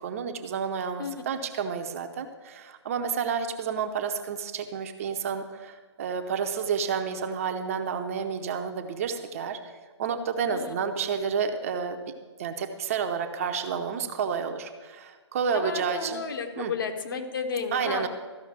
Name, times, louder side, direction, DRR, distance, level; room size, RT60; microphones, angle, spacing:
voice 1, 0.0-9.6 10.0-12.0 12.4-16.2 16.6-16.7 17.7-18.1, right 6 dB, 30° right, 6 dB, 0.6 m, -30 dB
voice 2, 15.5-18.1, left 5 dB, 45° left, 5 dB, 1.2 m, -32 dB
13.5 x 5.6 x 7.2 m, 1.4 s
figure-of-eight pair, 135°, 15 cm